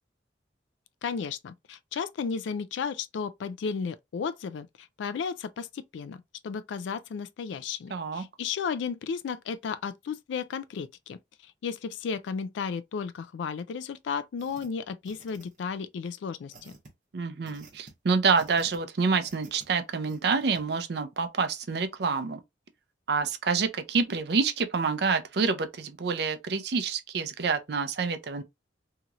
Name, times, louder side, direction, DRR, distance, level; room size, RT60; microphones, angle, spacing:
voice 1, 1.0-11.2 11.6-16.7, left 6 dB, 75° left, 0.3 m, -34 dB
voice 2, 7.9-8.2 17.1-22.4 23.1-28.4, right 5 dB, 55° right, 0.5 m, -27 dB
sound 1, 14.4-14.7 15.0-15.7 16.5-16.9 17.5-17.9 18.3-18.8 19.2-19.7 20.1-20.6, right 3 dB, 40° right, 0.9 m, -51 dB
2.9 x 2.8 x 2.4 m
head